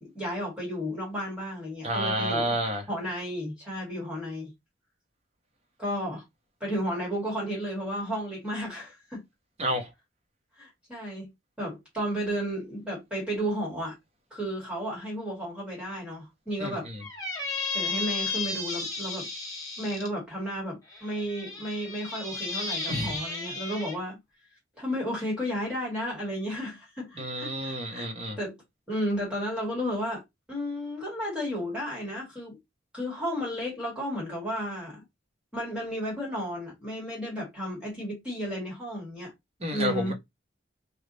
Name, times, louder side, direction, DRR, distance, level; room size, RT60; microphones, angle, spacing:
voice 1, 0.0-2.6 2.9-4.5 5.8-6.2 6.6-9.2 10.6-11.3 11.6-13.9 14.3-16.9 17.7-19.3 19.8-24.2 24.8-28.1 28.4-28.6 28.9-30.2 30.5-32.6 32.9-35.0 35.5-39.3 39.7-40.1, equal, 5° right, 1.7 m, -33 dB
voice 2, 1.8-2.9 9.6-9.9 16.6-17.0 22.9-23.2 27.2-28.4 39.6-40.1, equal, 30° right, 1.0 m, -30 dB
Squeak, 17.0-20.1 20.9-24.0, left 3 dB, 15° left, 1.3 m, -34 dB
3.4 x 2.4 x 3.9 m
head